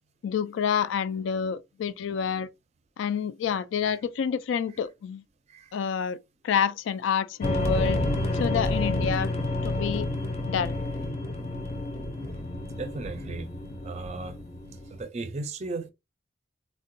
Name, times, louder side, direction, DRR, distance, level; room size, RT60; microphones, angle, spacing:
voice 1, 0.2-2.5 3.0-5.2 5.7-6.2 6.4-8.0 8.4-9.3 9.6-10.1 10.5-10.8, left 7 dB, 80° left, 0.3 m, -28 dB
sound 1, 7.4-15.0, left 2 dB, 35° left, 0.6 m, -29 dB
voice 2, 12.8-13.5 13.8-14.4 14.9-15.9, right 3 dB, 35° right, 0.4 m, -35 dB
3.6 x 2.1 x 2.5 m
head